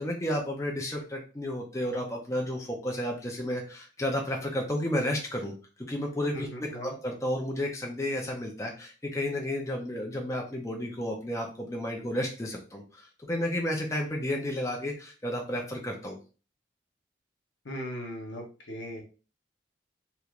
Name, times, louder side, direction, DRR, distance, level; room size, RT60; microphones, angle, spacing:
voice 1, 0.0-16.2, left 1 dB, 15° left, 0 dB, 0.5 m, -32 dB
voice 2, 6.3-6.9 17.6-19.0, equal, 85° left, 1 dB, 0.9 m, -38 dB
3.2 x 2.9 x 2.4 m, 0.35 s
head